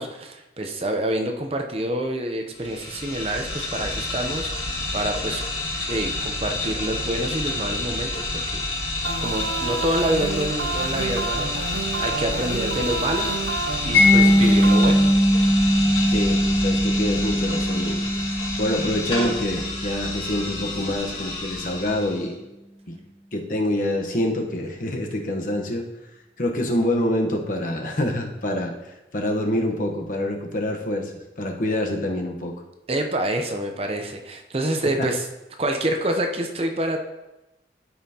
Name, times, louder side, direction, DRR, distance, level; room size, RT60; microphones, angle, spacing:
voice 1, 0.0-5.4 5.9-8.6 9.2-13.3 13.8-15.0 32.9-35.3 35.6-37.0, right 1 dB, 30° right, 4 dB, 0.6 m, -27 dB
sound 1, 2.5-22.2, left 2 dB, 30° left, 2.2 m, -29 dB
sound 2, 9.0-15.1, right 4 dB, 70° right, 0.6 m, -30 dB
Mallet percussion, 13.9-20.7, equal, 75° left, 2.2 m, -20 dB
voice 2, 16.1-18.0 18.6-22.3 22.9-23.0 23.3-25.8 26.4-28.7 29.1-31.1 31.4-32.5, left 1 dB, 45° left, 2 dB, 1.0 m, -26 dB
13.0 x 5.5 x 2.8 m, 0.99 s
head